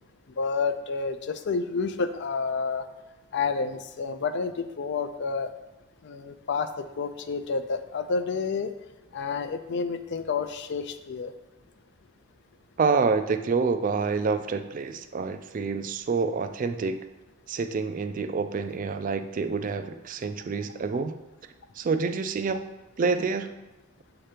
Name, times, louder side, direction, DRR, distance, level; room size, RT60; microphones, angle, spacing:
voice 1, 0.4-2.8 3.3-5.5 6.0-8.7 9.1-11.3, left 4 dB, 50° left, 10 dB, 0.4 m, -29 dB
voice 2, 12.8-17.0 17.5-21.1 21.8-22.6 23.0-23.5, right 4 dB, 35° right, 9 dB, 0.3 m, -27 dB
7.5 x 2.9 x 5.0 m, 1.1 s
head